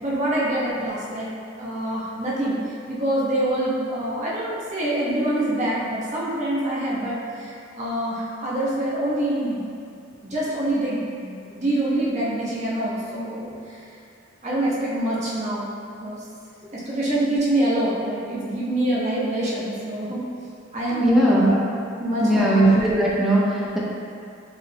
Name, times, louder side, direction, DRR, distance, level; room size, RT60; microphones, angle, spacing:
voice 1, 0.0-1.3 1.6-2.6 2.8-9.7 10.2-13.8 14.4-15.7 16.0-16.2 16.7-20.2 20.7-21.6 22.0-22.8, right 1 dB, 35° right, -8 dB, 0.9 m, -25 dB
voice 2, 20.9-21.5 22.2-23.8, right 1 dB, ahead, -6 dB, 0.5 m, -19 dB
4.6 x 2.5 x 3.4 m, 2.4 s
head